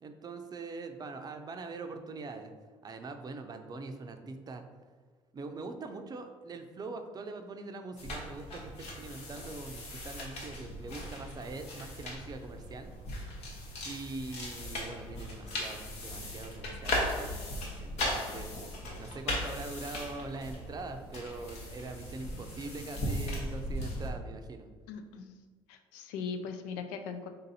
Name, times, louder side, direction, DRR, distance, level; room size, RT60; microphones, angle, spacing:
voice 1, 0.0-2.5 2.8-4.6 5.3-12.9 13.8-17.4 17.8-18.5 19.0-24.7, right 3 dB, 35° right, 6 dB, 0.5 m, -43 dB
sound 1, 8.0-24.1, left 1 dB, 65° left, 1.1 m, -38 dB
voice 2, 24.9-25.3 25.7-27.3, left 5 dB, 85° left, 7 dB, 0.4 m, -39 dB
3.9 x 2.6 x 4.1 m, 1.5 s
supercardioid pair, 80°, 12 cm